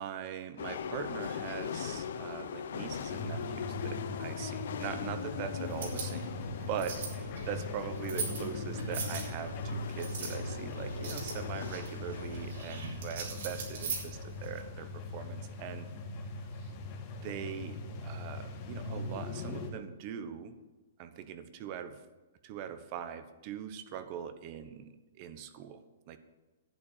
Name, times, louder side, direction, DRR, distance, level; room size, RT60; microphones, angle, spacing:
voice 1, 0.0-6.4 6.7-15.9 16.6-16.7 17.1-20.6 21.0-22.0 22.4-26.2, right 8 dB, 40° right, 11 dB, 1.1 m, -41 dB
sound 1, 0.6-12.6, left 8 dB, 70° left, 0.8 m, -41 dB
sound 2, 3.1-19.7, left 2 dB, 40° left, 2.0 m, -40 dB
sound 3, 5.6-14.6, right 5 dB, 65° right, 5.2 m, -42 dB
11.0 x 8.8 x 7.4 m, 1.2 s
hypercardioid pair, 145°, 0 cm